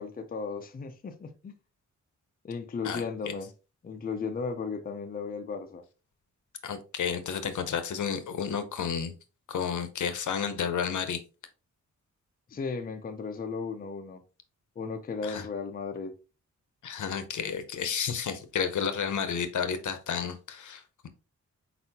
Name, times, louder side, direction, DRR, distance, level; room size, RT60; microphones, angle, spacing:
voice 1, 0.0-1.5 2.4-3.5 3.8-5.8 12.5-14.2 14.8-16.2, left 5 dB, 30° left, 0.5 m, -35 dB
voice 2, 2.8-3.3 6.6-9.1 9.5-11.2 15.2-15.5 16.8-21.1, left 7 dB, 75° left, 0.8 m, -31 dB
4.4 x 4.1 x 2.8 m
wide cardioid pair, 175°, 30 cm